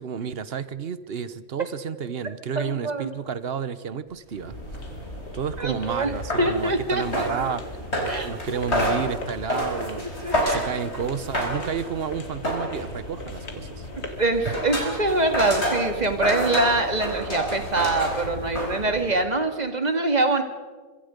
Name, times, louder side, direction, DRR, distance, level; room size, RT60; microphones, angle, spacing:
voice 1, 0.0-4.9 5.3-13.9, right 7 dB, 50° right, 15 dB, 1.0 m, -31 dB
voice 2, 2.6-3.1 5.6-7.3 8.1-8.6 10.0-10.7 14.2-20.4, right 2 dB, 30° right, 7 dB, 2.0 m, -24 dB
sound 1, 4.1-14.3, left 2 dB, 75° left, 2.5 m, -43 dB
sound 2, 4.3-19.2, equal, 50° left, 5.0 m, -30 dB
25.5 x 23.0 x 5.2 m, 1.4 s
omnidirectional pair, 1.4 m